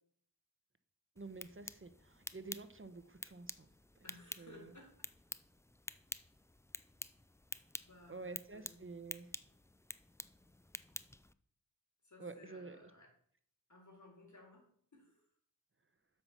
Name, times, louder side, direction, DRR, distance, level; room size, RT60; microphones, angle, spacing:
sound 1, 1.2-11.3, left 1 dB, 5° left, 0.4 m, -50 dB
voice 1, 1.2-3.7 4.4-4.7 8.1-9.3 12.2-12.9, right 3 dB, 30° right, 10 dB, 1.1 m, -49 dB
voice 2, 4.0-5.1 7.8-8.8 12.0-13.1 13.7-14.7 14.9-15.2, left 2 dB, 50° left, 0 dB, 3.9 m, -59 dB
7.8 x 5.9 x 6.9 m, 0.62 s
wide cardioid pair, 50°, 39 cm